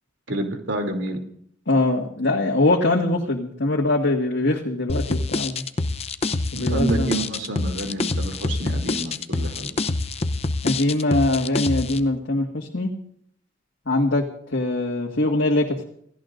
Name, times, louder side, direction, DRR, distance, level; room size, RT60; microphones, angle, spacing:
voice 1, 0.3-1.2 6.6-9.7, right 2 dB, 80° right, 3 dB, 3.0 m, -28 dB
voice 2, 1.7-5.6 6.5-7.1 10.6-12.9 13.9-14.2 14.5-15.8, left 2 dB, 70° left, -1 dB, 1.9 m, -22 dB
sound 1, 4.9-12.0, left 2 dB, 35° left, 0.7 m, -26 dB
28.0 x 16.5 x 2.6 m, 0.67 s
head